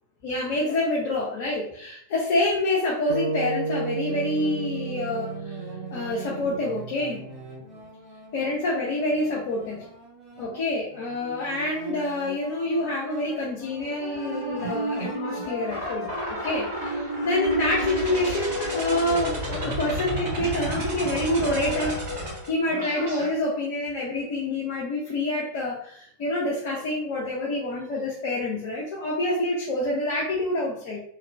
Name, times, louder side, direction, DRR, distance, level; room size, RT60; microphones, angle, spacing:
voice 1, 0.2-5.6 5.9-7.2 8.3-9.8 10.4-22.0 22.5-31.0, left 1 dB, 50° left, -3 dB, 0.5 m, -27 dB
sound 1, 3.1-7.5, right 3 dB, 65° right, 0.3 m, -32 dB
sound 2, 4.1-18.6, right 3 dB, 20° right, 0.7 m, -43 dB
sound 3, 13.9-23.3, equal, 50° right, 1.4 m, -31 dB
2.8 x 2.2 x 2.2 m, 0.62 s
figure-of-eight pair, 90°, 0 cm